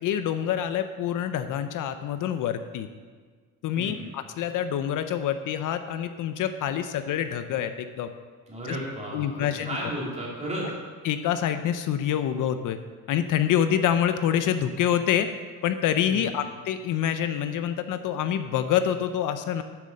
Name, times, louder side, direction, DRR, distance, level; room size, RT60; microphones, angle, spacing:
voice 1, 0.0-2.9 3.6-7.7 8.0-8.1 8.6-8.8 9.1-9.8 11.0-12.8 13.1-15.3 15.6-19.6, left 9 dB, 65° left, 9 dB, 0.6 m, -26 dB
voice 2, 3.7-4.1 8.5-10.7 16.1-16.4, right 1 dB, 20° right, -4 dB, 2.8 m, -34 dB
9.3 x 7.6 x 6.5 m, 1.5 s
cardioid pair, 180°, 34 cm